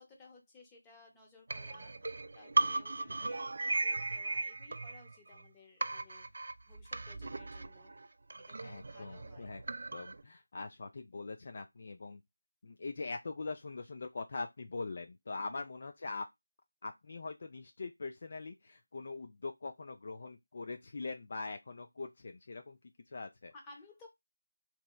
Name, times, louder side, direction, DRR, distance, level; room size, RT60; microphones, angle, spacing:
voice 1, 0.0-1.9 2.3-6.3 6.6-8.0 8.5-9.5 15.4-15.6 23.5-24.1, left 3 dB, 10° left, 0.7 m, -58 dB
sound 1, 1.5-5.5 5.8-10.2, right 2 dB, 50° right, 0.3 m, -37 dB
voice 2, 8.6-9.6 9.9-12.2 12.6-16.3 16.8-22.8 23.1-23.5, left 3 dB, 40° left, 0.3 m, -42 dB
3.0 x 2.9 x 2.2 m
figure-of-eight pair, 165°, 0 cm